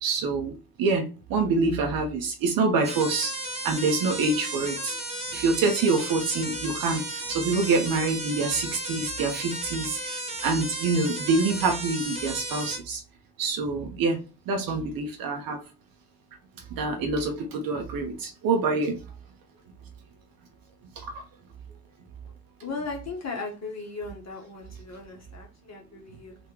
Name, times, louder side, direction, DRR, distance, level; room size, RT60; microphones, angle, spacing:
voice 1, 0.0-3.3 3.6-5.0 5.3-13.0 13.4-14.2 14.5-15.6 16.7-19.0 21.0-21.1, right 3 dB, 50° right, 4 dB, 0.9 m, -26 dB
sound 1, 2.8-12.8, right 1 dB, 15° right, 1.3 m, -34 dB
voice 2, 22.6-26.4, left 3 dB, 35° left, 0 dB, 1.7 m, -37 dB
3.8 x 2.6 x 4.6 m, 0.33 s
figure-of-eight pair, 45°, 46 cm